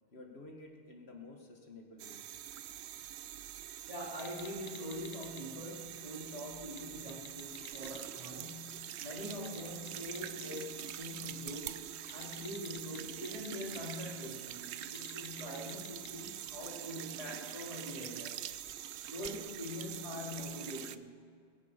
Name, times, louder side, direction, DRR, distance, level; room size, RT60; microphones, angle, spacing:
voice 1, 0.1-2.2, left 2 dB, 75° left, 2 dB, 1.9 m, -51 dB
sound 1, 2.0-21.0, right 11 dB, 90° right, 0.8 m, -45 dB
voice 2, 3.9-11.8 12.1-18.4 19.0-21.2, left 1 dB, 35° right, -4 dB, 3.3 m, -44 dB
sound 2, 4.1-5.4 6.7-8.0 9.2-10.9 12.1-13.8 14.7-16.1, left 5 dB, 50° left, 1.1 m, -52 dB
22.0 x 9.8 x 5.1 m, 2.1 s
omnidirectional pair, 1.1 m